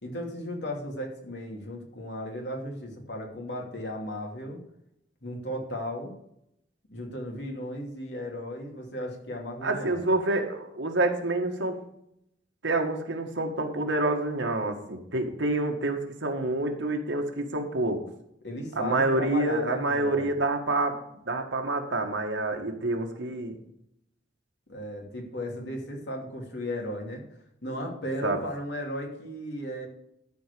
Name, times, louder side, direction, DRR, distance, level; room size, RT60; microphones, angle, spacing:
voice 1, 0.0-4.6 5.2-6.1 6.9-10.0 18.4-20.3 24.7-27.2 27.6-29.9, left 1 dB, 65° left, 0 dB, 2.7 m, -35 dB
voice 2, 9.6-11.8 12.6-18.0 18.7-23.6 28.2-28.4, right 2 dB, 80° right, 3 dB, 1.7 m, -27 dB
13.0 x 4.8 x 6.8 m, 0.76 s
head